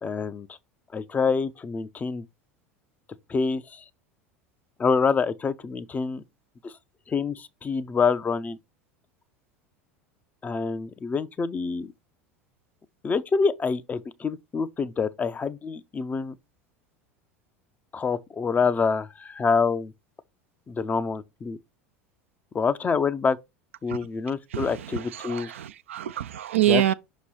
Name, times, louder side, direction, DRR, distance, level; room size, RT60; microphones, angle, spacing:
voice 1, 0.0-0.6 0.9-2.2 3.3-3.8 4.8-6.2 6.6-6.7 7.1-8.6 10.4-11.9 13.0-16.3 17.9-19.9 20.7-21.6 22.5-23.4 23.8-25.5 26.7-26.9, left 5 dB, 20° left, 0.6 m, -26 dB
voice 2, 24.5-26.9, right 13 dB, 70° right, 0.4 m, -26 dB
5.9 x 3.0 x 5.5 m
figure-of-eight pair, 75°, 7 cm